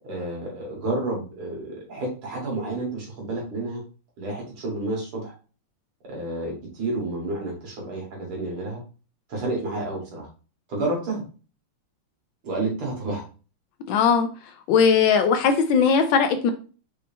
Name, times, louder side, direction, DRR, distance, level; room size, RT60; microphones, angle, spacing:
voice 1, 0.0-3.8 4.2-5.3 6.0-8.8 9.3-10.3 10.7-11.2 12.4-13.2, right 2 dB, 80° right, -2 dB, 2.7 m, -30 dB
voice 2, 13.9-14.3 14.7-16.5, left 6 dB, 75° left, 7 dB, 1.2 m, -19 dB
5.4 x 2.7 x 3.4 m, 0.36 s
omnidirectional pair, 2.3 m